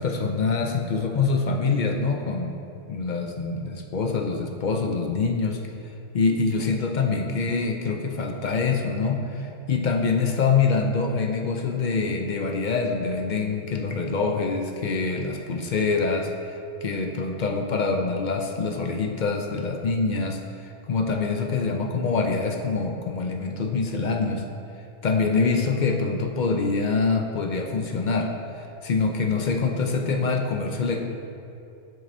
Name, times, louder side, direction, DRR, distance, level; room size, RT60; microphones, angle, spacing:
voice 1, 0.0-2.6 2.9-5.6 6.1-24.4 25.0-31.0, left 4 dB, 55° left, 2 dB, 0.6 m, -25 dB
7.7 x 7.3 x 2.6 m, 2.7 s
omnidirectional pair, 1.2 m